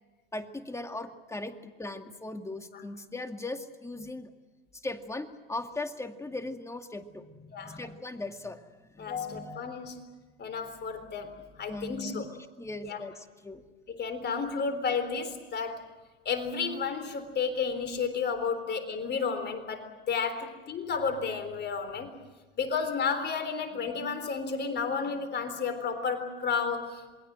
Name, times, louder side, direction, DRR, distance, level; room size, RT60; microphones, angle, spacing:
voice 1, 0.3-4.3 4.7-8.7 8.9-9.8 11.7-12.3 12.6-13.6 20.4-20.5, left 2 dB, 10° left, 7 dB, 2.2 m, -39 dB
voice 2, 9.0-10.0 10.4-11.3 11.6-12.3 12.8-13.0 13.9-15.9 16.3-22.1 22.6-27.0, left 5 dB, 35° left, 9 dB, 3.8 m, -32 dB
27.5 x 21.5 x 7.6 m, 1.3 s
hypercardioid pair, 90°, 29 cm